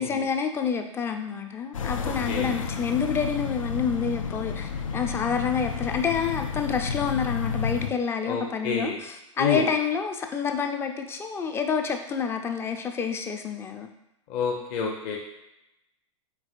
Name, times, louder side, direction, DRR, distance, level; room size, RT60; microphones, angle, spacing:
voice 1, 0.0-13.9, left 6 dB, 15° left, 5 dB, 0.3 m, -28 dB
sound 1, 1.7-7.9, left 6 dB, 85° left, 0.4 m, -31 dB
voice 2, 2.0-2.5 8.3-9.0 9.4-9.6 14.3-15.2, left 5 dB, 40° left, -1 dB, 0.7 m, -29 dB
4.6 x 3.8 x 2.4 m, 0.86 s
hypercardioid pair, 110°, 17 cm